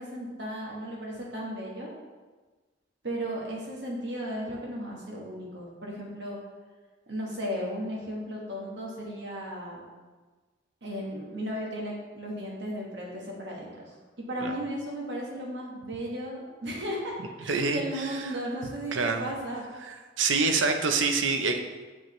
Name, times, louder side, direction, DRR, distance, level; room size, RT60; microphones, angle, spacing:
voice 1, 0.0-1.9 3.0-6.4 7.1-9.8 10.8-19.6, equal, 65° right, -3 dB, 1.3 m, -35 dB
voice 2, 17.5-18.2 18.9-19.2 20.2-21.6, right 4 dB, 90° right, 5 dB, 0.6 m, -26 dB
7.1 x 5.0 x 3.1 m, 1.3 s
head